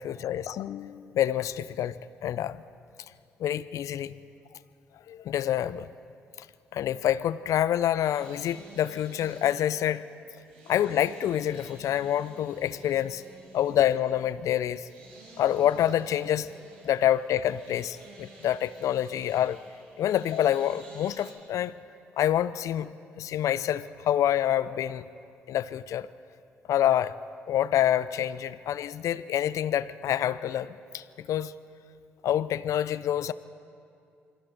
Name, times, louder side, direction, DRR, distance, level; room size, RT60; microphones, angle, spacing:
voice 1, 0.0-2.0 2.2-2.6 3.4-4.1 5.1-5.9 6.7-10.1 10.7-13.2 13.5-14.9 15.4-16.5 16.8-19.6 20.0-21.7 22.2-25.0 25.5-26.1 26.7-27.2 27.5-31.6 32.2-33.3, left 11 dB, 65° left, 17 dB, 0.6 m, -27 dB
sound 1, 7.6-21.3, right 2 dB, 90° right, 4.5 m, -52 dB
29.0 x 24.0 x 4.5 m, 2.5 s
hypercardioid pair, 45°, 6 cm